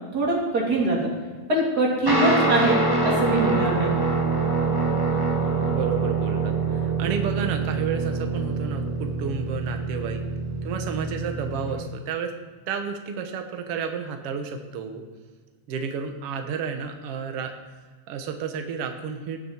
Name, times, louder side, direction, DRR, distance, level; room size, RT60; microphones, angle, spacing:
voice 1, 0.1-1.1 1.5-2.7 3.0-3.9, right 2 dB, 30° right, -3 dB, 3.3 m, -23 dB
Guitar, 2.1-11.8, right 3 dB, 10° right, 1.5 m, -25 dB
voice 2, 5.7-10.2 10.6-12.3 12.7-15.0 15.7-17.5 18.1-19.4, right 6 dB, 60° right, 5 dB, 2.0 m, -31 dB
19.5 x 6.8 x 4.4 m, 1.5 s
omnidirectional pair, 3.3 m